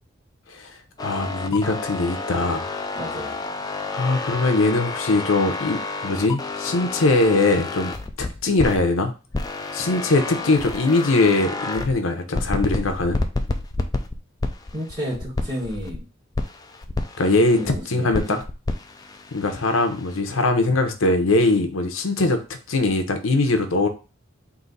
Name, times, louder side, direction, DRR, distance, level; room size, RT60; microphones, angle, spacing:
voice 1, 0.5-2.6 3.9-9.1 9.7-13.2 17.2-17.6 17.9-18.4 19.3-22.4 22.7-23.9, left 2 dB, 85° left, 6 dB, 0.7 m, -21 dB
sound 1, 1.0-8.8 9.3-12.0 12.3-16.0 16.3-17.8 18.1-20.2, left 2 dB, 20° left, 0.4 m, -30 dB
voice 2, 2.9-3.3 14.7-16.0 17.6-18.4, equal, 20° right, -6 dB, 1.8 m, -31 dB
4.0 x 2.7 x 3.9 m, 0.32 s
head